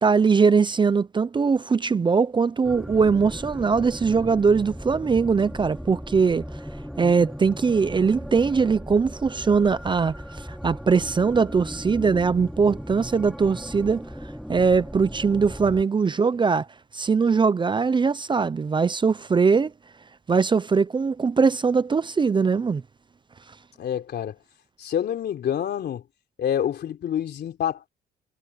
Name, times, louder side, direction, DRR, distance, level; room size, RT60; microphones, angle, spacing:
voice 1, 0.0-6.4 7.0-14.0 14.5-16.7 16.9-19.7 20.3-22.8, right 5 dB, 25° right, 0.6 m, -21 dB
sound 1, 2.6-15.8, equal, ahead, 1.2 m, -37 dB
voice 2, 23.8-24.4 24.8-26.0 26.4-27.9, left 9 dB, 60° left, 3.6 m, -27 dB
cardioid pair, 105°, 19 cm